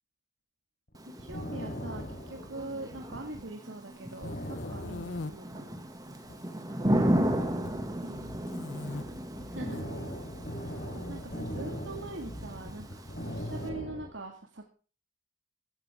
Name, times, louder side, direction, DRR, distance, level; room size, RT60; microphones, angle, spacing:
sound 1, 0.9-3.5 3.8-3.9 4.2-5.9 6.2-6.4 6.8-14.1, equal, 50° left, 4.5 m, -40 dB
Thunder / Rain, 1.0-13.7, right 1 dB, 20° right, 2.1 m, -35 dB
voice 1, 1.0-5.8 8.0-8.3 9.5-9.8 11.1-14.6, right 2 dB, 80° right, 2 dB, 2.0 m, -43 dB
sound 2, 3.9-5.3 6.0-6.6 6.9-7.8 8.4-9.0 9.6-9.8 11.0-11.9, left 3 dB, 70° left, 0.7 m, -42 dB
voice 2, 5.0-5.4 6.7-7.8 8.2-9.6 11.6-11.8, equal, 55° right, 0 dB, 7.0 m, -56 dB
16.0 x 13.0 x 3.6 m, 0.37 s
head